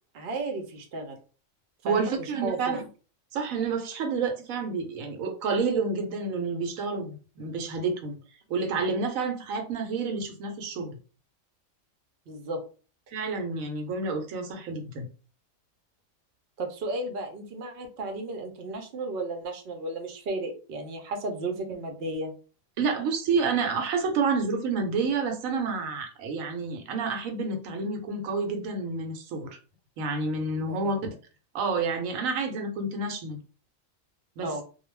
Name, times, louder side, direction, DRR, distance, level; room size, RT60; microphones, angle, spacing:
voice 1, 0.1-1.2 1.9-2.8 12.3-12.6 16.6-22.3 30.7-31.1 34.4-34.6, right 2 dB, 55° right, 4 dB, 0.8 m, -34 dB
voice 2, 1.8-2.8 3.3-8.1 8.5-11.0 13.1-15.1 22.8-29.6 30.0-31.0 31.5-33.4 34.4-34.5, right 4 dB, 85° right, 5 dB, 1.0 m, -29 dB
2.3 x 2.2 x 3.1 m, 0.36 s
omnidirectional pair, 1.4 m